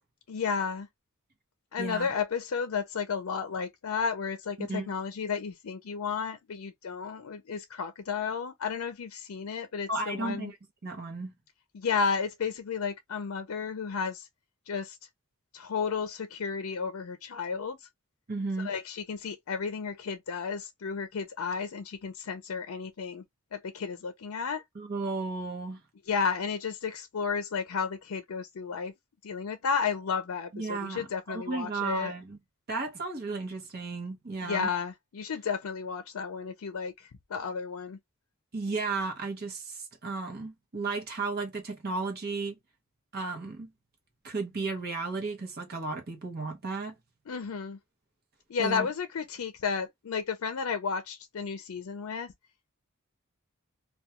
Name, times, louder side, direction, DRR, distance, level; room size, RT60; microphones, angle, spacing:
voice 1, 0.3-0.9 1.7-10.5 11.7-14.3 14.7-15.0 15.5-17.9 18.6-23.2 23.5-24.6 26.1-28.9 29.2-32.1 34.4-38.0 47.3-47.8 48.5-52.3, left 5 dB, 75° left, 0.5 m, -33 dB
voice 2, 1.8-2.1 4.6-4.9 9.9-10.6 10.8-11.3 18.3-18.7 24.7-25.8 30.5-32.4 32.7-34.7 38.5-42.5 43.1-43.7 44.2-46.9 48.6-48.9, right 3 dB, 45° right, 0.8 m, -34 dB
2.3 x 2.2 x 2.8 m
head